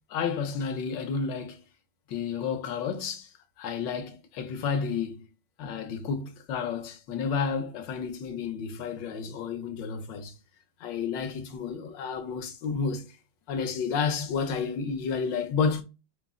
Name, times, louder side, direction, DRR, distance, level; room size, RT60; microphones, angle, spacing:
voice 1, 0.1-1.6 2.1-3.3 3.6-5.2 5.6-10.3 10.8-13.0 13.5-15.8, left 6 dB, 80° left, 1.3 m, -31 dB
5.3 x 2.0 x 3.5 m
omnidirectional pair, 2.0 m